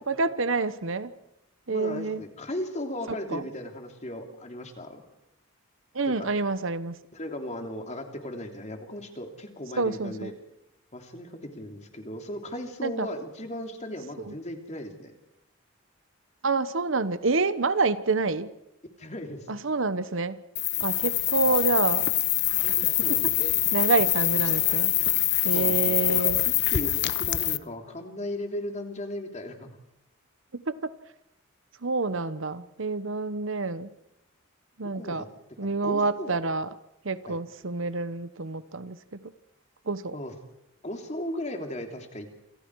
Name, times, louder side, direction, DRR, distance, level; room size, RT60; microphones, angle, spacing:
voice 1, 0.1-1.1 1.7-2.2 3.3-3.4 5.9-7.0 9.8-10.3 12.8-13.1 14.2-14.3 16.4-18.5 19.5-20.4 20.8-22.1 23.7-24.9 25.4-26.4 30.5-30.9 31.8-33.9 34.8-35.2 35.6-36.7 37.0-39.3 39.9-40.2, right 3 dB, 70° right, 14 dB, 1.1 m, -27 dB
voice 2, 1.7-5.0 6.0-6.3 7.1-10.3 10.9-15.1 19.0-19.5 23.0-23.5 25.5-26.3 26.7-29.7 34.9-35.3 35.6-36.4 37.3-37.4 40.1-40.3 40.8-42.3, left 1 dB, 35° left, 4 dB, 3.0 m, -36 dB
sound 1, 20.5-27.6, left 15 dB, 55° left, 0.9 m, -25 dB
28.0 x 25.5 x 4.7 m, 0.87 s
head